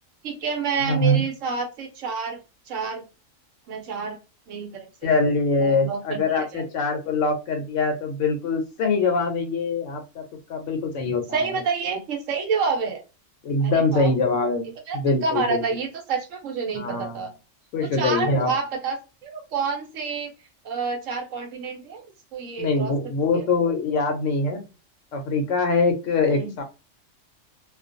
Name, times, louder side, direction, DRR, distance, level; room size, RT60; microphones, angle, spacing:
voice 1, 0.2-2.4 2.7-3.0 3.7-4.2 4.5-4.7 5.6-6.6 11.3-13.0 13.6-14.1 14.9-17.3 17.8-20.3 20.6-22.0 22.3-22.9 23.3-23.4 26.3-26.5, right 5 dB, 75° right, 2 dB, 1.0 m, -28 dB
voice 2, 0.8-1.2 5.0-10.2 10.5-11.6 13.4-14.7 14.9-15.6 16.7-17.2 17.7-18.5 22.6-24.6 25.1-26.6, left 3 dB, 75° left, 4 dB, 0.9 m, -23 dB
2.4 x 2.2 x 2.5 m, 0.29 s
omnidirectional pair, 1.4 m